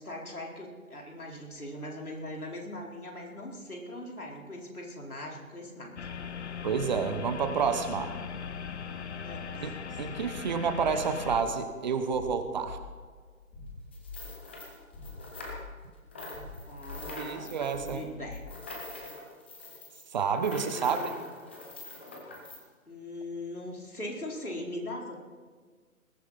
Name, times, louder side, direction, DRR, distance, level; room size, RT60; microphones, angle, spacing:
voice 1, 0.0-5.9 9.2-9.6 16.1-16.4 16.7-18.4 20.4-21.3 22.9-25.2, left 1 dB, 85° left, -1 dB, 4.4 m, -40 dB
sound 1, 6.0-11.4, left 6 dB, 50° left, 1.0 m, -39 dB
voice 2, 6.6-8.1 9.6-9.7 10.0-12.8 17.2-18.0 20.1-21.0, right 6 dB, 30° right, 8 dB, 1.2 m, -29 dB
sound 2, 10.7-19.0, left 3 dB, 25° left, 5.2 m, -46 dB
sound 3, 13.9-22.6, left 2 dB, 10° left, 0.6 m, -44 dB
20.5 x 14.5 x 4.2 m, 1.5 s
figure-of-eight pair, 145°, 43 cm